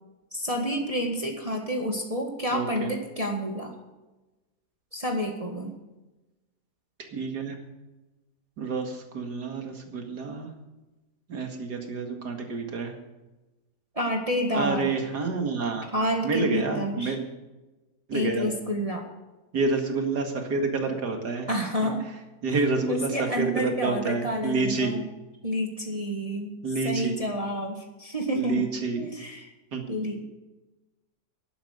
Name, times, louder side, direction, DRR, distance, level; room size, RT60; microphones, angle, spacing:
voice 1, 0.3-3.7 4.9-5.7 14.0-15.0 15.9-17.2 18.1-19.0 21.5-22.1 22.9-25.1 25.4-26.5 26.8-28.7 29.0-29.5 29.9-30.3, equal, 20° right, 1 dB, 1.7 m, -29 dB
voice 2, 2.5-2.9 7.1-7.6 8.6-10.5 11.3-12.9 14.5-15.9 16.2-17.2 18.1-18.4 19.5-21.5 22.4-24.9 26.6-27.1 28.4-29.0 29.7-29.8, right 3 dB, 85° right, 4 dB, 2.6 m, -28 dB
11.5 x 11.0 x 6.7 m, 1.1 s
omnidirectional pair, 1.7 m